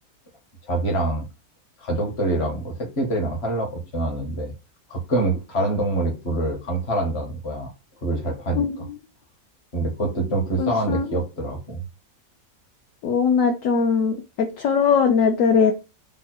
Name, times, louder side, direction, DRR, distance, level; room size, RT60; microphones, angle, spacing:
voice 1, 0.7-1.3 1.8-4.5 4.9-7.7 8.0-8.9 9.7-11.8, right 2 dB, 50° left, 1 dB, 1.3 m, -25 dB
voice 2, 10.6-11.0 13.0-15.7, left 6 dB, 70° left, 3 dB, 1.0 m, -20 dB
3.4 x 2.2 x 4.1 m, 0.29 s
omnidirectional pair, 1.5 m